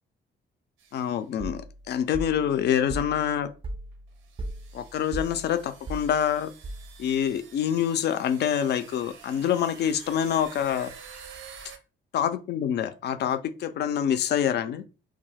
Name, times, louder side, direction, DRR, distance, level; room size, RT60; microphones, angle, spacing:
sound 1, 0.8-1.1 2.1-2.2 3.3-3.4 4.2-11.8, right 6 dB, 80° right, 0.5 m, -49 dB
voice 1, 0.9-3.5 4.7-6.5 7.0-10.9 12.1-14.8, left 9 dB, 60° left, 0.4 m, -26 dB
sound 2, 1.4-7.2, right 1 dB, 30° right, 0.4 m, -39 dB
2.3 x 2.2 x 3.2 m
cardioid pair, 90°, 20 cm